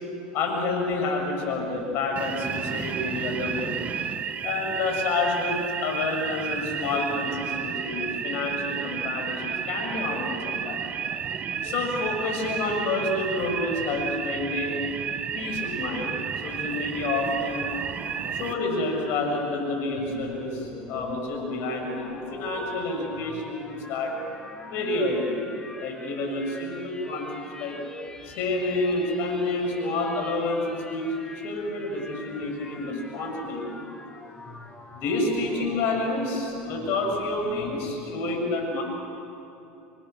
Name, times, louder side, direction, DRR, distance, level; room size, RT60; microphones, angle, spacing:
voice 1, 0.3-3.7 4.4-10.8 11.6-14.8 15.3-16.1 16.4-17.7 18.3-24.1 24.6-25.3 25.8-27.8 28.2-31.1 31.4-33.6 34.9-38.8, left 2 dB, 60° left, 1 dB, 7.1 m, -29 dB
sound 1, 2.2-18.5, right 7 dB, 35° right, 1.3 m, -32 dB
sound 2, 19.9-38.0, left 3 dB, 15° left, 1.9 m, -43 dB
28.5 x 23.5 x 7.0 m, 2.8 s
supercardioid pair, 110°, 4 cm